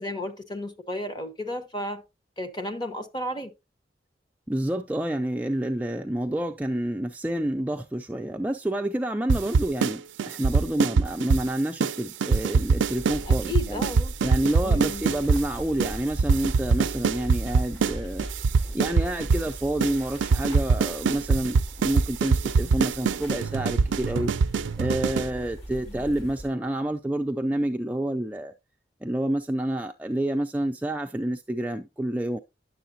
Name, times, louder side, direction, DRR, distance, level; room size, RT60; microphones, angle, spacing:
voice 1, 0.0-2.0 2.4-3.5 13.3-14.1 14.6-15.0 25.9-26.0, left 1 dB, 25° left, 0.9 m, -33 dB
voice 2, 4.5-13.9 14.2-18.3 18.7-24.3 24.8-28.5 29.0-32.4, right 1 dB, 10° right, 0.3 m, -28 dB
sound 1, 9.3-9.9 10.2-11.5 11.8-11.9 12.2-15.4 15.8-15.9 16.2-17.9 18.2-19.5 19.8-19.9 20.2-25.3, right 5 dB, 80° right, 0.4 m, -23 dB
sound 2, 12.8-26.5, right 1 dB, 80° left, 5.4 m, -39 dB
10.0 x 6.9 x 2.7 m
head